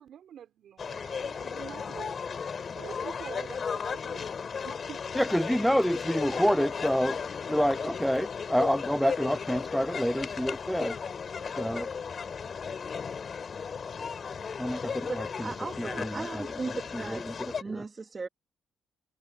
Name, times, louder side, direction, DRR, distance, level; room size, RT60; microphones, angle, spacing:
voice 1, 0.0-2.2 2.8-5.0, right 9 dB, 65° right, 5.2 m, -46 dB
sound 1, 0.8-17.6, left 6 dB, 45° left, 4.9 m, -35 dB
voice 2, 5.2-7.2 7.5-11.0 11.6-11.9 14.6-17.8, equal, ahead, 0.5 m, -28 dB
voice 3, 15.1-17.3 17.6-18.3, right 4 dB, 30° right, 2.8 m, -37 dB
cardioid pair, 90°, 0 cm